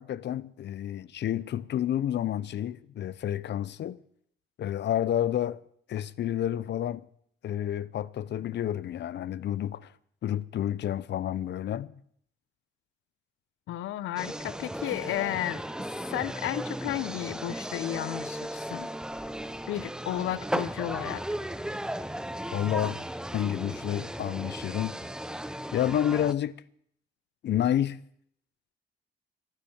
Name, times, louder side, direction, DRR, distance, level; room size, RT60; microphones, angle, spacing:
voice 1, 0.0-4.0 4.6-5.6 5.9-7.0 7.4-9.9 10.2-11.9 22.5-23.0 23.3-25.0 25.7-26.6 27.4-28.0, left 11 dB, 60° left, 0.8 m, -29 dB
voice 2, 13.7-18.9 19.7-21.2, left 13 dB, 85° left, 0.9 m, -33 dB
sound 1, 14.2-26.3, right 1 dB, 5° right, 0.8 m, -36 dB
15.0 x 13.5 x 7.2 m
cardioid pair, 90°, 20 cm